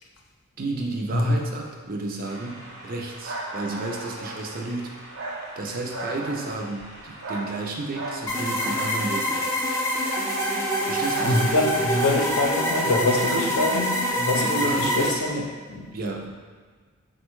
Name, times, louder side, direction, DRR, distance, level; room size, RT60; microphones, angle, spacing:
voice 1, 0.6-4.9 5.6-9.5 10.8-11.5 13.3-13.4 14.4-15.2 15.9-16.3, right 2 dB, 40° right, 0 dB, 0.5 m, -32 dB
sound 1, 2.2-12.5, right 2 dB, 80° right, 1.0 m, -38 dB
sound 2, 8.3-15.1, equal, 10° left, 0.5 m, -25 dB
voice 2, 11.2-15.4 15.7-15.9, left 2 dB, 80° left, 1 dB, 0.6 m, -24 dB
4.3 x 2.2 x 4.5 m, 1.5 s
head